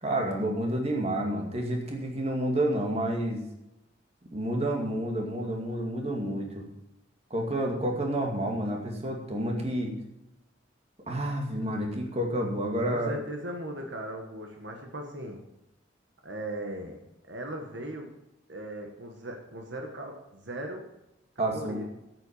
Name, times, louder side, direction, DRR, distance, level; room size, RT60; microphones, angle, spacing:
voice 1, 0.0-3.4 4.3-6.7 7.3-9.9 11.1-13.1 21.4-21.8, right 1 dB, 30° right, 1 dB, 2.2 m, -29 dB
voice 2, 12.8-15.4 16.2-17.0 17.3-18.1 18.5-20.9 21.3-21.8, right 1 dB, 65° right, 3 dB, 1.5 m, -38 dB
8.9 x 7.9 x 8.6 m, 0.90 s
head